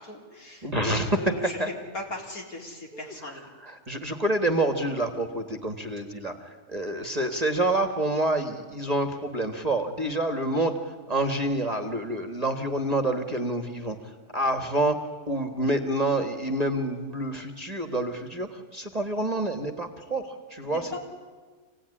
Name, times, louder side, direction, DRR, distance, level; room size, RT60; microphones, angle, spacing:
voice 1, 0.0-3.5 20.7-21.0, left 2 dB, 65° left, 0 dB, 4.5 m, -38 dB
voice 2, 0.6-1.1 1.4-1.7 2.9-3.1 3.6-6.3 6.7-10.8 11.1-13.9 14.3-15.0 15.3-21.0, right 1 dB, 25° right, 5 dB, 1.7 m, -27 dB
26.0 x 17.5 x 9.9 m, 1.5 s
omnidirectional pair, 1.7 m